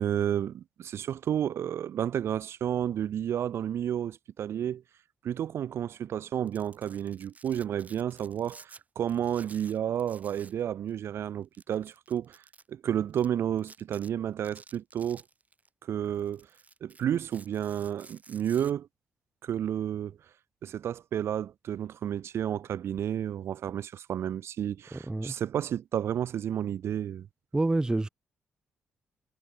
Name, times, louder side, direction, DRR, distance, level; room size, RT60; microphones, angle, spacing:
voice 1, 0.0-4.8 5.2-12.4 12.7-15.2 15.8-16.5 16.8-18.9 19.4-20.2 20.6-27.3, right 10 dB, 65° right, 0.7 m, -31 dB
Domestic sounds home sounds, 6.3-8.8 9.1-10.6 10.9-11.0 11.5-12.6 13.1-13.3 13.6-14.1 14.4-15.7 16.1-18.7, right 4 dB, 35° right, 2.7 m, -53 dB
voice 2, 24.9-25.3 27.5-28.1, right 2 dB, 15° right, 0.6 m, -27 dB
supercardioid pair, 60°, 5 cm